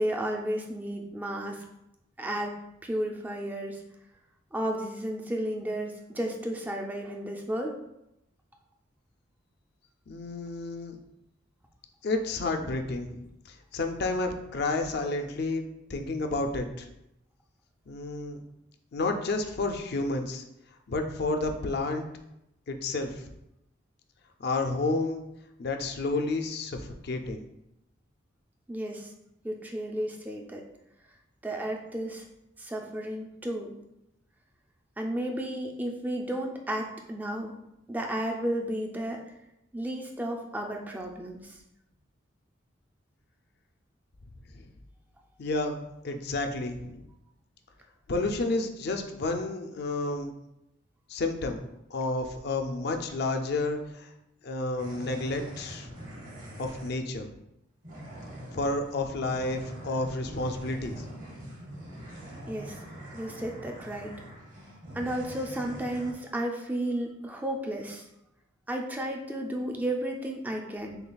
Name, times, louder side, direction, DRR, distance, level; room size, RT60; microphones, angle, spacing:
voice 1, 0.0-1.6 2.2-2.5 2.8-3.8 4.5-7.7 28.7-29.1 29.4-30.6 31.4-32.2 32.6-33.7 35.0-37.6 37.9-39.2 39.7-41.6 62.5-62.8 63.1-64.1 64.9-68.1 68.7-71.0, right 1 dB, 10° right, 1 dB, 0.4 m, -33 dB
voice 2, 10.1-11.0 12.0-15.6 15.9-16.9 17.9-18.4 18.9-20.4 20.9-22.0 22.7-23.3 24.4-25.2 25.6-27.5 44.5-44.7 45.4-47.1 48.1-50.3 51.1-51.6 51.9-54.1 54.4-56.0 56.6-57.3 58.5-61.1, left 2 dB, 55° left, 5 dB, 0.4 m, -31 dB
sound 1, 54.8-56.9 57.8-66.1, right 1 dB, 40° right, 0.9 m, -44 dB
6.4 x 2.3 x 2.3 m, 0.85 s
head